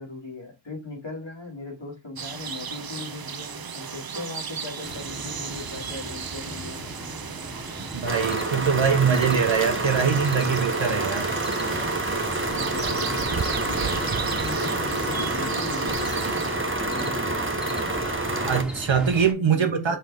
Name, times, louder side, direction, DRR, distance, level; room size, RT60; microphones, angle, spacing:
voice 1, 0.0-6.8 12.5-17.2 19.4-20.0, left 3 dB, 75° left, 3.5 m, -38 dB
sound 1, 2.2-16.6, right 6 dB, 55° right, 0.6 m, -35 dB
sound 2, 4.8-19.3, equal, ahead, 2.6 m, -38 dB
voice 2, 7.9-11.3 18.4-20.0, right 6 dB, 85° right, 0.9 m, -23 dB
sound 3, 8.0-18.6, right 2 dB, 25° right, 1.4 m, -28 dB
5.6 x 5.2 x 3.6 m
wide cardioid pair, 50°, 45 cm